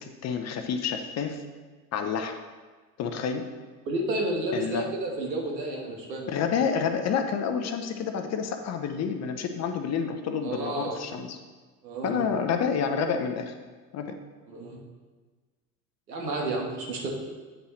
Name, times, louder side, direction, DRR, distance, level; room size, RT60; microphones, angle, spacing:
voice 1, 0.0-1.4 1.9-2.3 3.0-3.4 4.5-4.8 6.3-11.4 12.0-13.5 13.9-14.2, left 6 dB, 30° left, 6 dB, 0.7 m, -29 dB
voice 2, 3.8-6.3 10.4-11.0 11.8-12.2 14.5-14.8 16.1-17.1, right 2 dB, 85° right, 0 dB, 1.4 m, -31 dB
8.6 x 5.5 x 3.1 m, 1.4 s
hypercardioid pair, 80°, 50 cm